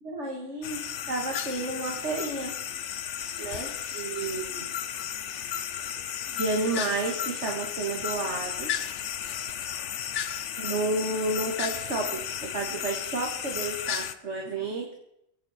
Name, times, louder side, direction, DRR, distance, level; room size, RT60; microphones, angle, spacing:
voice 1, 0.0-0.8 1.1-2.5 3.4-4.7 6.3-8.9 10.6-14.9, right 3 dB, 75° right, 1 dB, 2.1 m, -31 dB
sound 1, 0.6-14.1, left 9 dB, 85° left, 1.1 m, -34 dB
24.5 x 8.8 x 4.3 m, 0.80 s
omnidirectional pair, 1.2 m